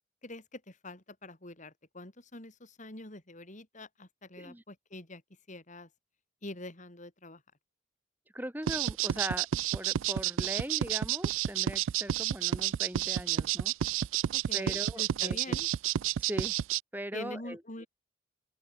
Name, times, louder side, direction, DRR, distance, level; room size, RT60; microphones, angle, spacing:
voice 1, 0.2-5.2 5.5-5.9 6.4-7.4 14.3-15.7 17.1-17.9, left 2 dB, 40° left, 3.6 m, -45 dB
voice 2, 8.3-9.5 9.7-13.7 14.5-15.6 16.2-16.6 16.9-17.9, right 1 dB, 10° right, 4.1 m, -40 dB
sound 1, 8.7-16.8, right 11 dB, 85° right, 0.4 m, -30 dB
open air
head